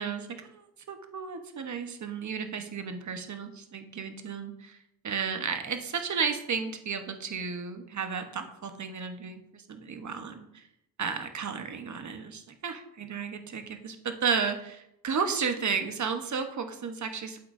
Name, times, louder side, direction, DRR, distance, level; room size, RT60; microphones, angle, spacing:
voice 1, 0.0-4.8 5.0-10.6 11.0-17.4, right 6 dB, 55° right, 7 dB, 1.0 m, -33 dB
8.5 x 7.9 x 2.6 m, 0.82 s
cardioid pair, 80°, 35 cm